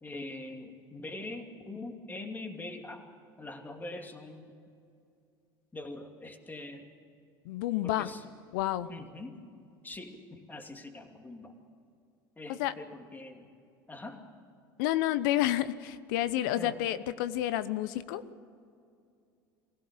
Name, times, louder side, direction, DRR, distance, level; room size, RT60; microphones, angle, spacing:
voice 1, 0.0-3.1 3.4-4.5 5.7-6.9 7.8-8.2 8.9-9.4 9.8-11.6 12.4-13.5 13.9-14.2 16.5-16.8, left 2 dB, 15° left, 4 dB, 2.7 m, -43 dB
voice 2, 7.5-8.1 8.5-8.9 12.5-12.7 14.8-18.2, left 13 dB, 70° left, 15 dB, 0.9 m, -30 dB
23.5 x 16.5 x 6.9 m, 2.4 s
hypercardioid pair, 85°, 11 cm